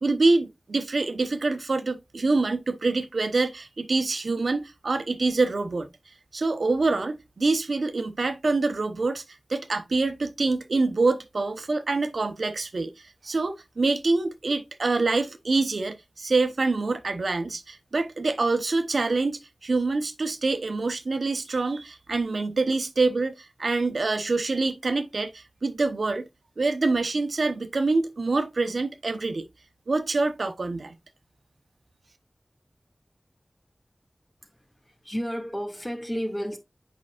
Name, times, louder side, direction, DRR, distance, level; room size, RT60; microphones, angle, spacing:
voice 1, 0.0-5.9 6.3-9.2 9.5-26.3 26.6-29.5 29.9-31.0, right 3 dB, 85° right, 0.8 m, -26 dB
voice 2, 34.4-36.6, equal, 15° left, 1.9 m, -32 dB
8.5 x 5.4 x 2.4 m
wide cardioid pair, 60°, 0 cm